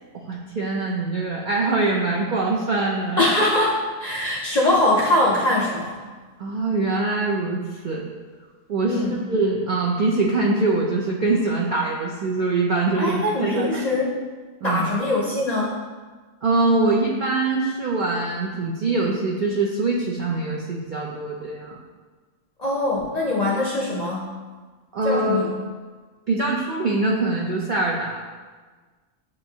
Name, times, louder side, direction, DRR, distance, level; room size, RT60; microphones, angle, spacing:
voice 1, 0.1-3.3 6.4-8.0 8.7-9.0 9.3-13.8 14.6-14.9 16.4-21.8 24.9-25.5 26.3-28.2, right 3 dB, 65° right, -3 dB, 0.5 m, -23 dB
voice 2, 3.2-6.0 8.8-9.2 13.0-14.1 14.6-15.7 22.6-24.3 25.0-25.5, left 1 dB, 50° left, -5 dB, 0.5 m, -22 dB
7.5 x 2.6 x 2.7 m, 1.4 s
omnidirectional pair, 1.3 m